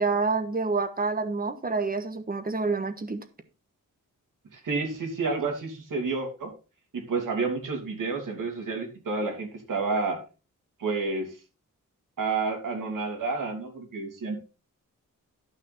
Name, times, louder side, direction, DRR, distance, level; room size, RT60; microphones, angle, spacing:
voice 1, 0.0-3.2, right 4 dB, 30° right, 1.2 m, -28 dB
voice 2, 4.5-6.5 6.9-10.2 10.8-11.3 12.2-14.5, right 4 dB, 75° right, 3.0 m, -30 dB
12.0 x 5.8 x 4.2 m
wide cardioid pair, 125°, 32 cm